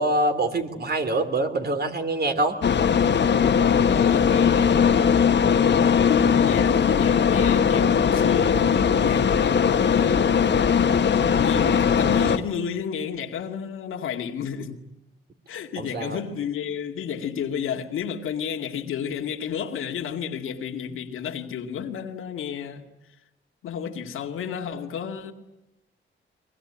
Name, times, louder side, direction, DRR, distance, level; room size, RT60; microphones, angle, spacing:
voice 1, 0.0-2.6 15.8-16.2, right 2 dB, 50° right, 3.4 m, -25 dB
sound 1, 2.6-12.4, left 7 dB, 60° left, 1.6 m, -19 dB
voice 2, 3.9-5.4 5.8-8.7 9.0-10.5 11.2-14.8 15.5-22.8 23.6-25.3, left 8 dB, 85° left, 2.2 m, -31 dB
23.0 x 23.0 x 10.0 m
cardioid pair, 70°, 21 cm